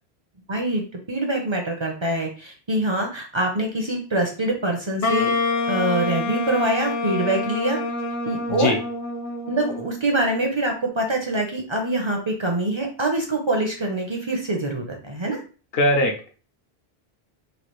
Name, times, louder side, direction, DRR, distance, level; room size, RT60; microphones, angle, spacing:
voice 1, 0.5-5.3 5.7-7.8 8.2-8.8 9.5-15.4, right 1 dB, 40° right, 2 dB, 0.5 m, -24 dB
Wind instrument woodwind instrument, 5.0-10.0, left 3 dB, 50° left, 0.4 m, -26 dB
voice 2, 15.7-16.3, left 1 dB, 75° left, 3 dB, 0.8 m, -21 dB
3.1 x 2.4 x 2.9 m, 0.37 s
omnidirectional pair, 1.0 m